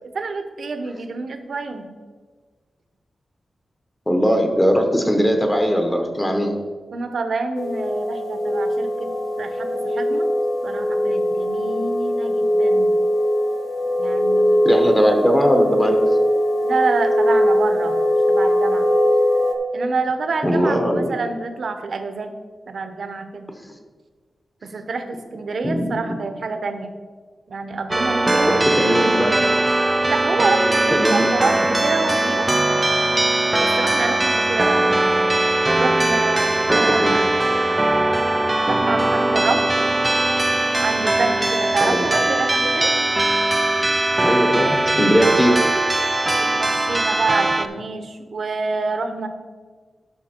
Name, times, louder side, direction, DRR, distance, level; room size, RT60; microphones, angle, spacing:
voice 1, 0.0-1.9 6.9-9.1 9.4-10.3 10.6-12.9 14.0-14.9 16.6-18.0 18.3-18.9 19.7-22.3 22.7-23.5 24.7-26.9 27.5-29.3 30.1-32.5 33.6-35.1 35.8-37.3 38.7-39.7 40.8-42.9 46.4-49.3, right 4 dB, 55° right, 7 dB, 0.9 m, -27 dB
voice 2, 4.1-6.5 14.6-16.0 20.4-21.1 25.6-25.9 28.5-29.3 30.9-31.3 36.7-37.1 41.8-42.0 44.2-45.6, equal, 10° left, 4 dB, 1.0 m, -19 dB
sound 1, 7.5-19.5, equal, 35° left, 1.1 m, -20 dB
sound 2, 27.9-47.7, right 2 dB, 15° right, 0.4 m, -20 dB
12.0 x 5.9 x 4.4 m, 1.5 s
wide cardioid pair, 175°, 0 cm